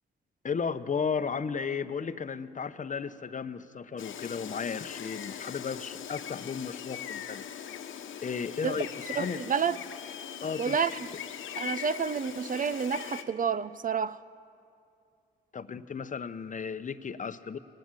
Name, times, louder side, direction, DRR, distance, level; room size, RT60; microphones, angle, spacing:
voice 1, 0.4-7.5 8.2-9.4 10.4-10.8 15.5-17.6, left 6 dB, 40° left, 0.8 m, -34 dB
Gull seagull, 4.0-13.2, left 9 dB, 75° left, 1.1 m, -40 dB
voice 2, 9.2-9.8 10.6-10.9 11.6-14.2, right 6 dB, 40° right, 0.6 m, -29 dB
19.0 x 15.5 x 9.0 m
supercardioid pair, 65°, 20 cm